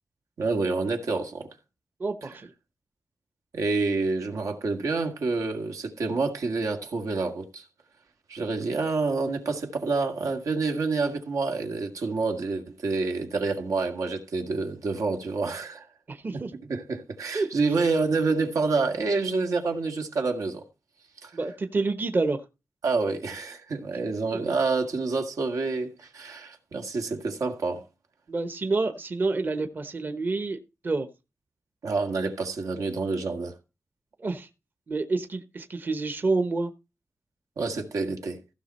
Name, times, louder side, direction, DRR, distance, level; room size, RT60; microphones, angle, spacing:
voice 1, 0.4-1.5 2.2-2.3 3.5-7.7 8.3-15.9 16.3-16.4 16.7-20.6 21.2-21.4 22.8-27.8 31.8-33.5 37.6-38.4, right 3 dB, 85° right, 1.9 m, -28 dB
voice 2, 2.0-2.5 16.1-16.5 17.3-17.5 21.3-22.4 24.3-24.4 28.3-30.6 30.8-31.1 34.2-34.5 34.9-36.7, right 3 dB, 35° right, 0.9 m, -28 dB
15.5 x 5.9 x 4.2 m
wide cardioid pair, 170°, 5 cm